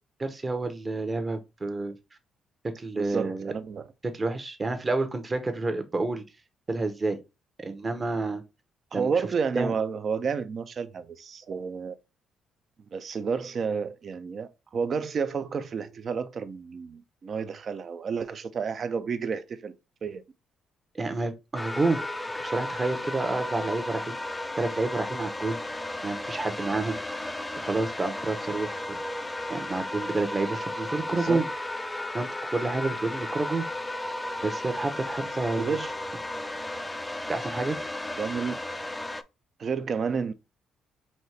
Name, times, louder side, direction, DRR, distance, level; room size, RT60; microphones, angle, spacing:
voice 1, 0.2-1.9 2.6-3.5 4.0-6.2 6.7-7.2 7.6-8.4 8.9-9.1 9.5-9.7 20.9-22.0 22.4-25.6 26.0-27.0 27.5-29.0 29.5-31.5 32.1-33.7 34.4-35.9 37.3-37.8, right 3 dB, 30° right, 0.8 m, -29 dB
voice 2, 3.0-3.8 8.9-11.9 12.9-19.7 20.0-20.2 31.1-31.5 35.6-35.9 38.2-38.6 39.6-40.3, right 5 dB, 50° right, 0.5 m, -30 dB
sound 1, 21.6-39.2, left 1 dB, 10° left, 0.4 m, -34 dB
4.2 x 2.8 x 3.2 m
cardioid pair, 80°, 0 cm